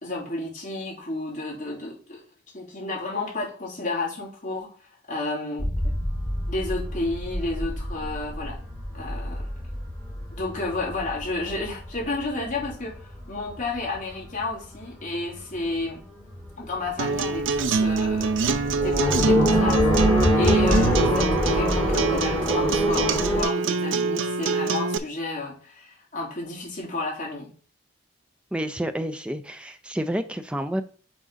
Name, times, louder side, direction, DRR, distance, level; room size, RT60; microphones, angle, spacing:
voice 1, 0.0-2.2 2.5-4.7 5.1-5.7 6.5-8.6 8.9-9.5 10.3-16.0 16.6-27.5, left 2 dB, 40° left, 2.7 m, -31 dB
sound 1, 5.6-14.5 14.8-15.5 15.8-16.0 16.3-23.4, left 1 dB, 10° left, 2.9 m, -26 dB
Acoustic guitar, 17.0-25.0, right 5 dB, 80° right, 0.5 m, -24 dB
voice 2, 28.5-30.8, equal, 5° right, 0.4 m, -29 dB
6.2 x 3.8 x 5.1 m
head